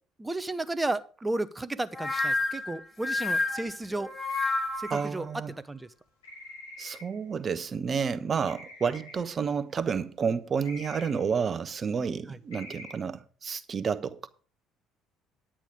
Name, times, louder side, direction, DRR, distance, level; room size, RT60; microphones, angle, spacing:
voice 1, 0.2-4.1 4.8-5.3 5.6-5.9 12.3-12.4, right 2 dB, 15° right, 0.9 m, -33 dB
sound 1, 1.9-5.0, left 2 dB, 25° left, 4.0 m, -29 dB
sound 2, 4.8-5.2 6.2-7.2 8.5-9.4 10.7-11.4 12.5-12.9, left 2 dB, 85° left, 2.6 m, -46 dB
voice 2, 4.9-5.5 6.8-14.3, right 6 dB, 40° right, 1.0 m, -30 dB
10.0 x 8.9 x 4.9 m
hypercardioid pair, 55°, 0 cm